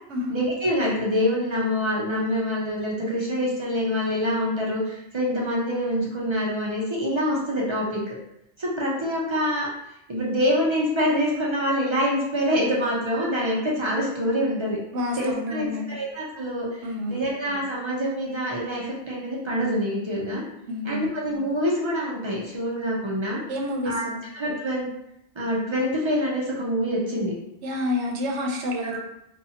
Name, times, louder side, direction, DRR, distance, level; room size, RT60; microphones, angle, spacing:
voice 1, 0.3-8.1 8.6-9.7 10.1-14.8 15.2-20.4 20.8-23.4 23.8-24.0 24.3-24.9 25.4-27.4 28.8-29.0, equal, 40° right, -4 dB, 0.4 m, -25 dB
voice 2, 14.9-15.8 16.8-17.2 20.7-21.1 23.5-24.2 27.6-29.0, left 1 dB, 80° right, 1 dB, 0.9 m, -28 dB
2.6 x 2.3 x 2.7 m, 0.80 s
omnidirectional pair, 1.2 m